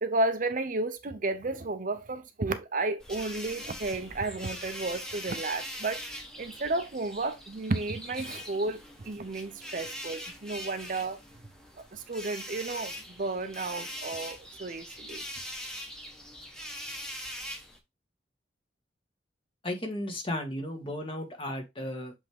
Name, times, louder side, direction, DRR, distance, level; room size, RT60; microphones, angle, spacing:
voice 1, 0.0-11.2 11.8-15.2, right 2 dB, 45° right, 0.7 m, -32 dB
sound 1, 3.0-17.8, equal, 5° left, 1.3 m, -42 dB
voice 2, 19.6-22.1, left 1 dB, 30° left, 1.7 m, -34 dB
7.6 x 3.6 x 3.4 m
head